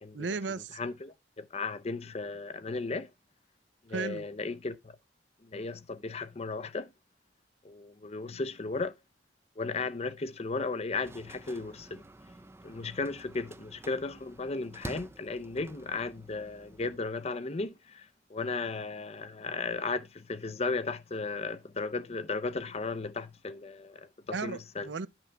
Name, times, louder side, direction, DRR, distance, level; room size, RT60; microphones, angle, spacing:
voice 1, 0.1-0.8 3.9-4.3 24.3-25.1, right 4 dB, 80° right, 0.6 m, -35 dB
voice 2, 0.7-3.1 3.9-4.9 5.4-6.9 7.6-8.9 9.6-12.0 12.6-24.9, left 3 dB, 35° left, 0.6 m, -35 dB
sound 1, 11.0-17.0, right 2 dB, 15° right, 0.5 m, -49 dB
11.0 x 6.0 x 3.4 m
head